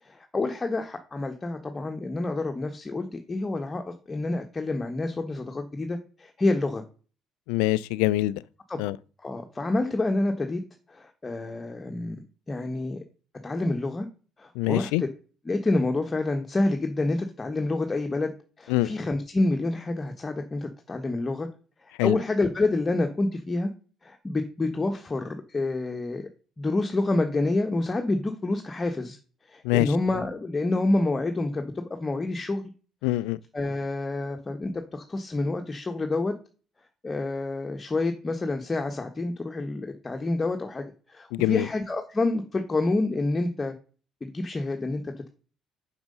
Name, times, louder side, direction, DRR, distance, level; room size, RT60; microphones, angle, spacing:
voice 1, 0.0-6.8 8.7-8.8 9.2-10.6 10.9-13.0 13.4-14.1 14.4-15.1 15.4-21.5 21.8-23.7 24.0-26.3 26.6-29.2 29.5-32.7 33.5-36.3 37.0-43.7 44.2-45.3, left 2 dB, 25° left, 1.4 m, -28 dB
voice 2, 7.5-8.4 8.8-9.0 14.6-15.0 18.7-18.9 22.0-22.2 29.6-29.9 33.0-33.4 41.3-41.7, left 18 dB, 80° left, 0.3 m, -24 dB
6.5 x 6.0 x 5.4 m
hypercardioid pair, 60°, 0 cm